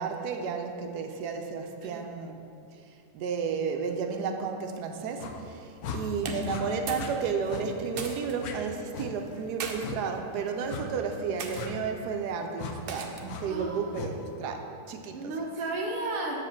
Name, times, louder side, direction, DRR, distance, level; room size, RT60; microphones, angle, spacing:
voice 1, 0.0-2.4 3.1-15.2, right 5 dB, 85° right, 4 dB, 1.2 m, -32 dB
sound 1, 5.2-5.4 5.8-6.0 6.4-6.6 6.9-7.1 7.5-7.6 7.9-8.1 8.4-8.5 8.9-9.1 9.8-10.0 10.7-10.9 11.5-11.7 12.6-12.7 13.3-13.4 13.9-14.1, left 6 dB, 70° left, 1.1 m, -37 dB
sound 2, 6.2-7.1 7.4-8.4 9.3-9.8 10.5-10.8 11.4-11.7 12.9-13.4, right 4 dB, 60° right, 0.6 m, -38 dB
voice 2, 13.5-14.1 15.1-16.4, right 2 dB, 40° right, 0 dB, 0.9 m, -33 dB
7.1 x 4.9 x 5.7 m, 2.5 s
omnidirectional pair, 1.7 m